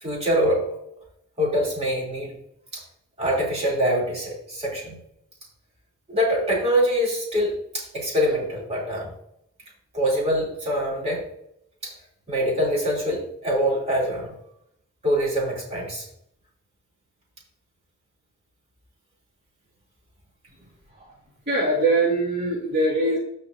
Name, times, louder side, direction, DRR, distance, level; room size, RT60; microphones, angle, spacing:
voice 1, 0.0-0.6 1.4-2.3 2.7-2.8 3.2-5.0 6.1-9.1 9.9-11.2 11.8-11.9 12.3-14.4 15.0-16.0, equal, 30° right, -5 dB, 3.0 m, -24 dB
voice 2, 21.5-23.2, right 2 dB, 50° right, -7 dB, 2.5 m, -22 dB
14.5 x 5.1 x 2.7 m, 0.73 s
head